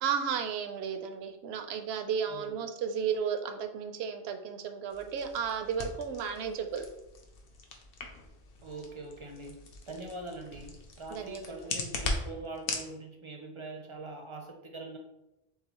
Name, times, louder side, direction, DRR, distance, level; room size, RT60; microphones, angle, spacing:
voice 1, 0.0-6.9 11.1-11.5, right 7 dB, 75° right, 6 dB, 0.8 m, -33 dB
sound 1, 4.9-12.9, left 3 dB, 65° left, 0.9 m, -40 dB
voice 2, 8.6-15.0, right 2 dB, 40° right, 2 dB, 0.5 m, -43 dB
6.8 x 2.3 x 2.9 m, 0.94 s
omnidirectional pair, 1.1 m